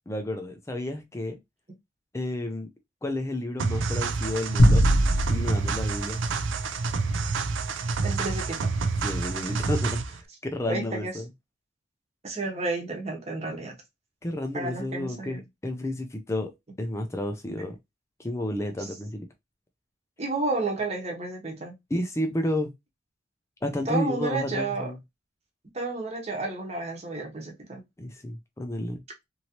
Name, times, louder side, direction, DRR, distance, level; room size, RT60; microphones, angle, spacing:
voice 1, 0.1-1.4 2.1-2.7 3.0-4.8 5.3-6.2 9.0-11.2 14.2-16.5 16.8-17.8 18.2-19.3 21.9-22.7 23.6-25.0 28.0-29.0, left 1 dB, 15° left, 0.4 m, -31 dB
sound 1, 3.6-10.2, right 4 dB, 85° right, 0.5 m, -28 dB
sound 2, 4.6-7.1, equal, 55° left, 0.7 m, -22 dB
voice 2, 8.0-8.7 10.7-11.2 12.2-13.7 14.5-15.4 18.8-18.9 20.2-21.7 23.9-24.9 25.7-27.8, right 3 dB, 35° right, 1.0 m, -31 dB
3.0 x 2.7 x 2.8 m
head